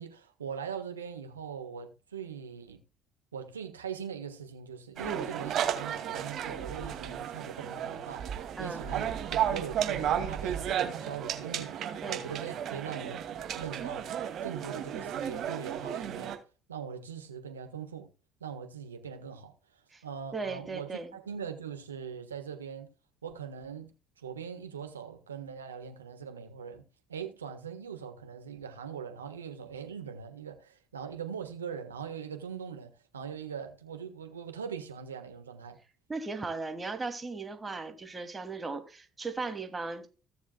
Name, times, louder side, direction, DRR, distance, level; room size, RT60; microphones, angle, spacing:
voice 1, 0.0-2.8 3.3-13.2 13.5-14.1 14.4-16.3 16.7-18.1 18.4-19.5 20.0-22.9 23.2-23.9 24.2-26.8 27.1-35.8, right 7 dB, 90° right, 1.4 m, -41 dB
sound 1, 5.0-16.4, right 9 dB, 55° right, 2.3 m, -34 dB
voice 2, 20.3-21.1 36.1-40.1, right 3 dB, 25° right, 2.6 m, -37 dB
16.5 x 7.2 x 2.3 m
hypercardioid pair, 55°, 0 cm